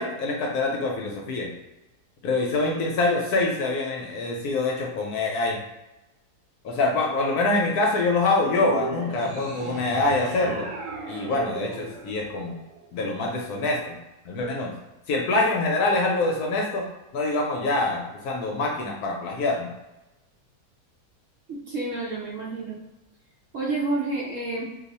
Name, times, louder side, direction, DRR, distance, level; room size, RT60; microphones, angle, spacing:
voice 1, 0.0-1.5 2.2-5.6 6.6-10.7 11.1-12.6 12.9-14.0 14.2-14.7 15.1-19.7, left 2 dB, 70° left, 0 dB, 1.0 m, -25 dB
sound 1, 8.5-13.0, right 3 dB, 80° right, 1.3 m, -36 dB
voice 2, 21.5-22.8 23.5-24.7, right 2 dB, 65° right, -5 dB, 0.8 m, -29 dB
2.7 x 2.4 x 4.0 m, 1.0 s
omnidirectional pair, 1.9 m